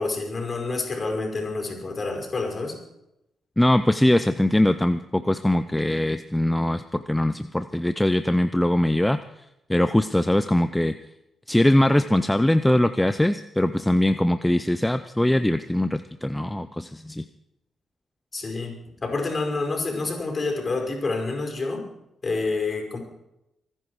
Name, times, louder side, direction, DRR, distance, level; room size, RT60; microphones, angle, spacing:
voice 1, 0.0-2.8 18.3-21.8 22.2-23.0, left 3 dB, 40° left, 2 dB, 5.2 m, -28 dB
voice 2, 3.6-9.2 9.7-10.9 11.5-17.2, left 1 dB, 10° left, 10 dB, 0.6 m, -21 dB
24.5 x 10.0 x 4.8 m, 0.86 s
cardioid pair, 70°, 0 cm